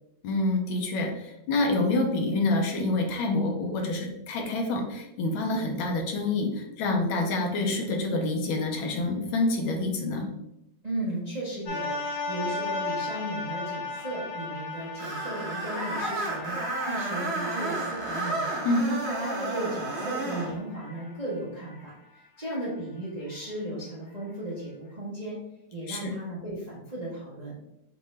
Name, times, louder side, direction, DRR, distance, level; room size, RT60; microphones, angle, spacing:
voice 1, 0.2-10.3 18.6-18.9 25.9-26.1, left 2 dB, 75° left, 2 dB, 1.5 m, -27 dB
voice 2, 10.8-18.5 18.9-25.4 25.7-27.6, right 1 dB, 30° right, -7 dB, 0.7 m, -35 dB
sound 1, 11.7-21.9 22.4-22.6, left 3 dB, 55° left, 1.5 m, -36 dB
Screech, 15.0-20.5, right 2 dB, 90° right, 0.5 m, -32 dB
5.4 x 2.6 x 3.1 m, 0.83 s
omnidirectional pair, 2.3 m